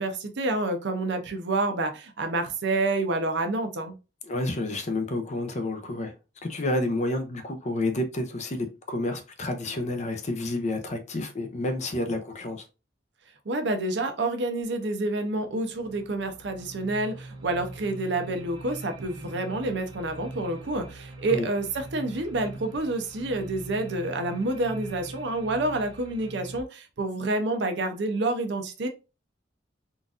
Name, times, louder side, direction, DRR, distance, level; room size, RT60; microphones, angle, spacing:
voice 1, 0.0-4.0 13.5-28.9, right 2 dB, 65° right, 0.6 m, -28 dB
voice 2, 4.2-6.1 6.4-12.6 21.3-21.5, left 2 dB, 40° left, 0.6 m, -29 dB
sound 1, 15.3-26.6, right 2 dB, 25° right, 0.6 m, -42 dB
3.8 x 2.4 x 2.5 m
head